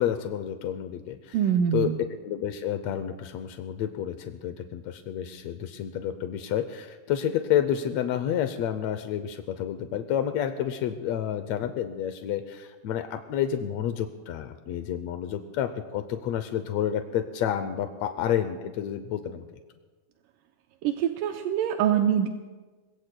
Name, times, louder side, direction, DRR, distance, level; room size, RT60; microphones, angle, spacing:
voice 1, 0.0-1.4 1.7-1.9 2.2-19.4, left 10 dB, 85° left, 8 dB, 1.5 m, -29 dB
voice 2, 1.3-2.0 20.8-22.3, right 9 dB, 85° right, 5 dB, 2.3 m, -24 dB
27.0 x 21.5 x 2.2 m, 1.3 s
omnidirectional pair, 3.8 m